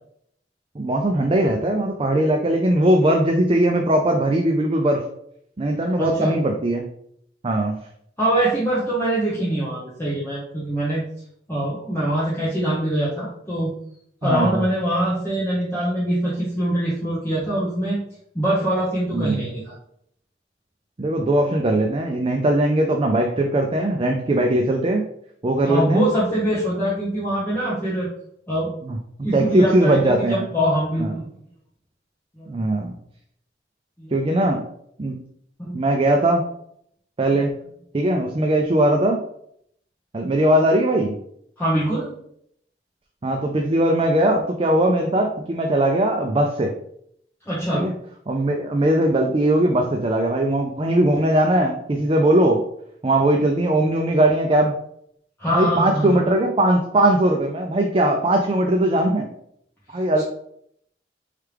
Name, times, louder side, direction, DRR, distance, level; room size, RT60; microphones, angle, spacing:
voice 1, 0.7-5.0 5.6-6.9 7.4-7.8 14.2-14.6 19.1-19.4 21.0-25.0 25.4-26.1 28.8-29.0 29.3-30.4 31.0-31.1 32.5-32.9 34.1-34.6 35.0-35.2 35.7-36.4 37.2-37.5 37.9-39.2 40.1-41.2 43.2-46.7 47.7-47.9 48.3-52.6 53.0-54.8 55.5-59.3 59.9-60.2, right 1 dB, 30° right, 2 dB, 0.4 m, -20 dB
voice 2, 6.0-6.3 8.2-11.0 11.5-13.7 14.2-18.0 18.3-19.7 25.6-28.1 28.5-28.7 29.2-30.0 30.3-31.3 32.4-32.7 34.0-34.1 35.6-35.7 41.6-42.1 47.5-47.9 55.4-56.2, right 1 dB, 15° left, -9 dB, 1.1 m, -23 dB
4.6 x 3.3 x 3.3 m, 0.69 s
head